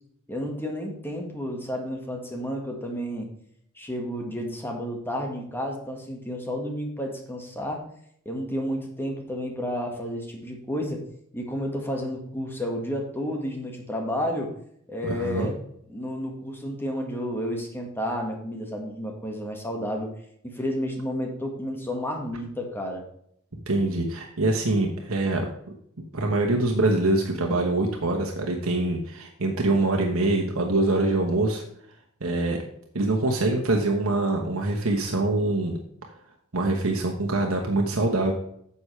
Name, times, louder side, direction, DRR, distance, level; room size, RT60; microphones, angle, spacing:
voice 1, 0.3-3.3 3.8-7.9 8.2-11.0 11.3-14.6 14.9-15.6 15.9-20.1 20.4-23.1, equal, 10° left, 1 dB, 1.7 m, -31 dB
voice 2, 15.0-15.5 23.7-25.4 26.1-31.6 32.2-32.6 32.9-35.8 36.5-38.3, right 2 dB, 80° right, 1 dB, 1.3 m, -24 dB
9.7 x 7.1 x 3.3 m, 0.69 s
head